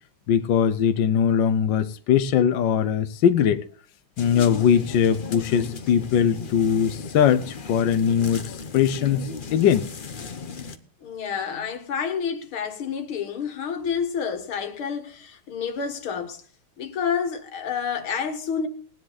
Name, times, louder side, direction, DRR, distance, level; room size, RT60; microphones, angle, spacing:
voice 1, 0.3-3.6 4.2-9.9, left 8 dB, 70° left, 1.4 m, -21 dB
sound 1, 4.2-10.8, left 5 dB, 45° left, 0.6 m, -36 dB
voice 2, 11.0-16.4 16.8-18.7, left 6 dB, 85° left, 2.4 m, -29 dB
19.0 x 10.0 x 4.0 m
omnidirectional pair, 2.3 m